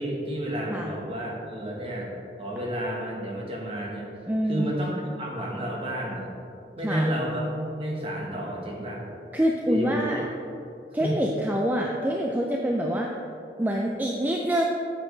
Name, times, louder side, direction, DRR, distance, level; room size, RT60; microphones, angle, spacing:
voice 1, 0.0-2.1 2.4-4.1 4.5-6.3 6.8-9.0 9.7-10.2 11.0-11.1, equal, 30° right, -2 dB, 1.3 m, -31 dB
voice 2, 4.3-4.7 6.8-7.1 9.3-10.2 10.9-13.1 13.6-14.6, equal, 10° right, 0 dB, 0.4 m, -26 dB
8.8 x 7.3 x 3.2 m, 2.7 s
head